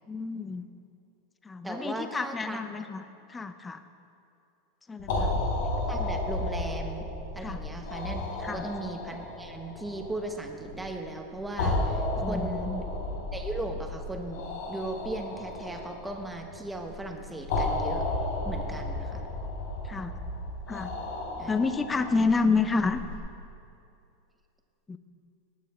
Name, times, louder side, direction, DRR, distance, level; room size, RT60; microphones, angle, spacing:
voice 1, 0.1-0.6 1.4-3.0 3.3-3.8 4.9-5.3 7.4-7.6 8.4-8.7 12.2-12.8 19.8-20.1 20.7-20.9 21.5-23.0 24.9-25.0, left 4 dB, 10° left, 10 dB, 0.6 m, -29 dB
voice 2, 1.6-2.6 5.9-7.1 7.3-12.7 13.3-18.1 18.4-19.2 21.4-21.5, right 2 dB, 5° right, 3 dB, 1.1 m, -37 dB
sound 1, 5.0-23.2, left 2 dB, 70° left, 3.2 m, -33 dB
18.0 x 9.1 x 4.3 m, 2.6 s
supercardioid pair, 150°, 0 cm